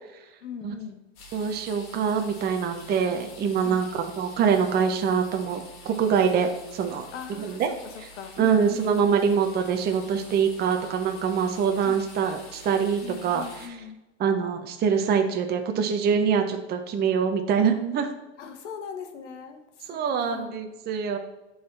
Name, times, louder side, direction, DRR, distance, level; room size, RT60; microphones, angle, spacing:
voice 1, 0.4-1.0 3.6-3.9 7.1-7.6 8.2-9.1 11.8-12.1 13.0-14.0 18.4-19.6 20.2-20.7, left 7 dB, 85° left, 6 dB, 1.2 m, -39 dB
sound 1, 1.2-13.7, left 2 dB, 50° left, 2.5 m, -47 dB
voice 2, 1.3-7.7 8.0-8.1 8.4-13.8 14.2-18.1 19.9-21.2, right 6 dB, 30° right, 5 dB, 0.7 m, -24 dB
11.0 x 4.0 x 3.3 m, 1.0 s
supercardioid pair, 120°, 35 cm